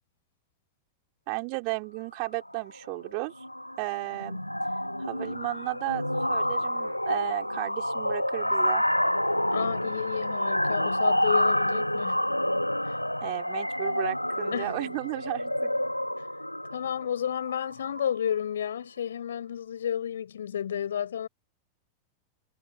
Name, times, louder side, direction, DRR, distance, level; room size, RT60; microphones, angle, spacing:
voice 1, 1.3-3.4 3.8-4.4 5.0-8.8 13.2-15.7, right 40 dB or more, 45° right, 4.5 m, -34 dB
sound 1, 2.3-2.6 2.9-3.1 3.4-18.3, left 1 dB, 90° left, 2.5 m, -28 dB
voice 2, 9.5-12.2 12.8-13.0 14.5-14.9 16.2-16.3 16.7-21.3, left 9 dB, 65° left, 7.1 m, -32 dB
figure-of-eight pair, 90°, 0 cm